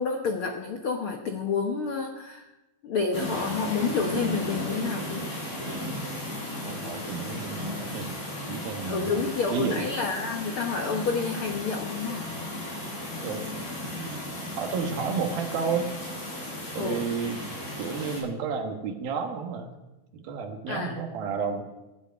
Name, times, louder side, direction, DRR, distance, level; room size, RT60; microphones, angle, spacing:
voice 1, 0.0-2.5 2.8-5.2 8.8-12.3 16.8-17.0 20.7-21.0, left 5 dB, 80° left, 4 dB, 1.2 m, -29 dB
sound 1, 3.1-18.2, left 1 dB, 55° left, 9.0 m, -35 dB
voice 2, 6.6-8.2 8.5-9.9 13.2-13.5 14.0-15.9 16.7-17.4 17.8-19.7 20.1-21.6, right 6 dB, 80° right, 4 dB, 3.2 m, -32 dB
16.0 x 8.1 x 9.3 m, 1.0 s
omnidirectional pair, 4.2 m